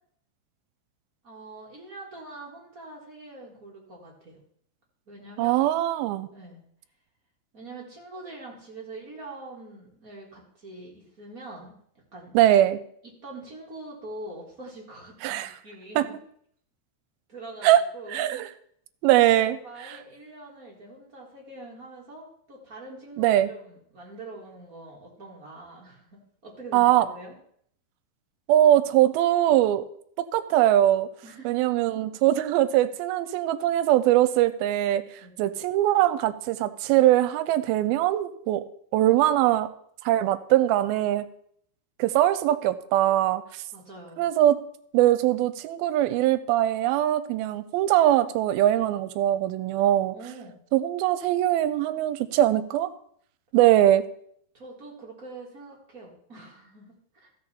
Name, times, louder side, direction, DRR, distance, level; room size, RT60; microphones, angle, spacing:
voice 1, 1.2-4.4 5.1-5.7 6.3-6.6 7.5-11.7 12.1-12.3 13.0-16.2 17.3-18.4 19.3-27.3 31.2-31.5 35.2-35.3 43.7-44.2 50.1-50.6 54.5-57.3, right 2 dB, 45° right, -3 dB, 1.1 m, -44 dB
voice 2, 5.4-6.3 12.3-12.8 15.2-15.5 16.0-16.1 17.6-17.8 18.1-18.5 19.0-20.0 23.2-23.5 26.7-27.1 28.5-29.9 30.2-31.1 31.5-35.0 35.4-38.6 38.9-39.7 40.0-41.3 42.0-43.6 44.2-44.6 44.9-50.2 50.7-52.9 53.5-54.0, right 13 dB, 85° right, 13 dB, 2.4 m, -21 dB
14.5 x 6.6 x 4.1 m, 0.65 s
omnidirectional pair, 4.4 m